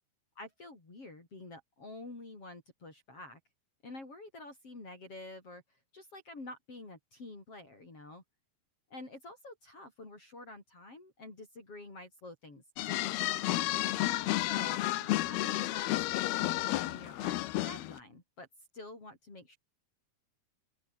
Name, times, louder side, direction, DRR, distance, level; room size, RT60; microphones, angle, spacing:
voice 1, 0.4-3.4 3.8-5.6 5.9-8.2 8.9-13.2 14.4-18.5 18.7-19.6, left 2 dB, 35° left, 7.6 m, -48 dB
sound 1, 12.8-18.0, left 16 dB, 85° left, 2.9 m, -31 dB
open air
omnidirectional pair, 4.4 m